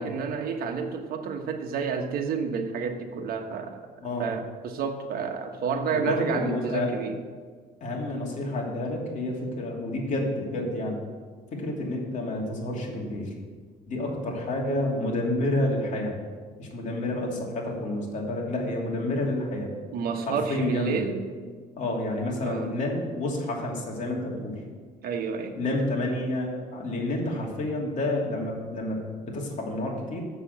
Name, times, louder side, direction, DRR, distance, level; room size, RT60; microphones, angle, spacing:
voice 1, 0.0-3.8 4.2-7.1 16.8-17.0 19.9-21.2 22.4-22.7 25.0-25.6, right 5 dB, 60° right, 4 dB, 1.3 m, -30 dB
voice 2, 4.0-4.3 5.9-7.0 7.8-11.0 11.5-13.3 13.9-16.2 16.6-19.7 20.3-21.0 21.8-24.6 25.6-30.2, left 1 dB, 45° left, -2 dB, 2.8 m, -29 dB
7.3 x 6.9 x 7.9 m, 1.5 s
cardioid pair, 110°, 17 cm